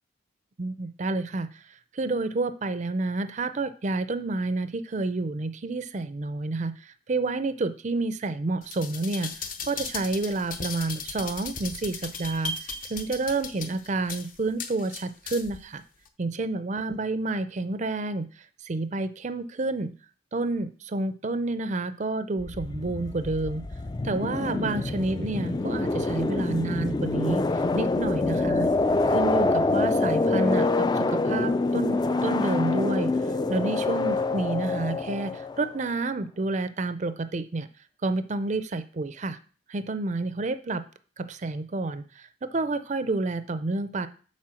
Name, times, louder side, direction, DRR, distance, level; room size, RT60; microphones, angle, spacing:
voice 1, 0.6-1.6 1.9-12.5 12.9-15.8 16.2-18.3 18.6-19.9 20.3-23.6 24.0-27.4 27.7-28.7 29.1-33.1 33.5-37.7 38.0-39.4 39.7-40.8 41.2-44.1, right 3 dB, 40° right, 11 dB, 0.5 m, -29 dB
sound 1, 8.6-15.6 16.1-16.2, left 4 dB, 45° left, 0.8 m, -37 dB
sound 2, 22.4-35.8, left 3 dB, 20° left, 0.3 m, -26 dB
7.4 x 4.4 x 6.3 m, 0.39 s
head